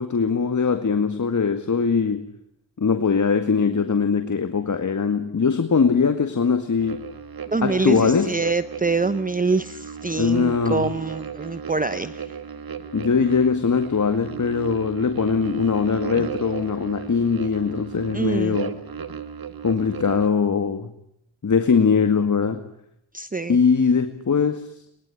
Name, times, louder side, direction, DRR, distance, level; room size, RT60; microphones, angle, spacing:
voice 1, 0.0-2.3 2.8-7.0 7.6-8.4 10.1-10.9 12.9-18.7 19.6-20.9 21.4-22.6 23.5-24.7, left 5 dB, 40° left, 8 dB, 2.0 m, -21 dB
sound 1, 6.8-20.3, right 6 dB, 50° right, 2.0 m, -35 dB
voice 2, 7.5-12.3 18.1-18.6 23.1-23.6, right 3 dB, 20° right, 14 dB, 0.9 m, -25 dB
23.0 x 21.0 x 10.0 m, 0.77 s
cardioid pair, 70°, 47 cm